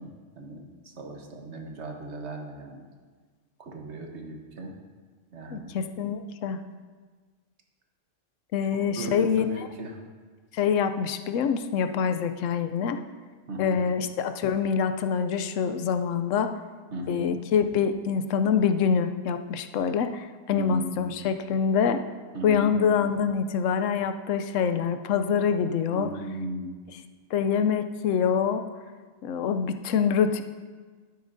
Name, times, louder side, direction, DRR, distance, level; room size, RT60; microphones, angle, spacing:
voice 1, 0.0-2.9 3.6-4.8 5.3-5.7 8.7-10.0 13.5-13.8 16.9-17.3 20.5-21.2 22.3-22.7 25.9-26.7, right 1 dB, 65° right, 2 dB, 1.3 m, -37 dB
voice 2, 5.5-6.6 8.5-9.4 10.5-13.0 13.6-16.5 17.1-22.0 22.4-26.1 27.3-28.6 29.2-30.4, left 7 dB, 90° left, 9 dB, 1.0 m, -25 dB
12.0 x 9.5 x 2.6 m, 1.5 s
omnidirectional pair, 1.3 m